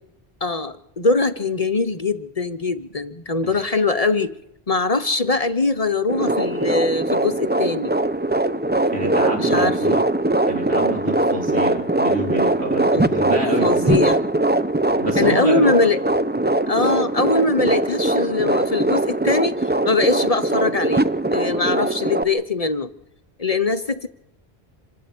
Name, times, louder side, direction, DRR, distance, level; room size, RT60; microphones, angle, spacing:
voice 1, 0.4-4.3 4.7-7.9 9.4-9.8 12.9-13.1 13.6-14.2 15.2-16.0 16.7-22.9 23.4-24.1, left 3 dB, 40° left, 11 dB, 0.9 m, -22 dB
sound 1, 6.1-22.2, right 2 dB, 10° right, 0.6 m, -21 dB
voice 2, 8.9-10.0 10.5-14.0 15.0-15.7, right 2 dB, 85° right, 1 dB, 4.0 m, -27 dB
27.0 x 12.5 x 8.6 m, 0.81 s
omnidirectional pair, 1.1 m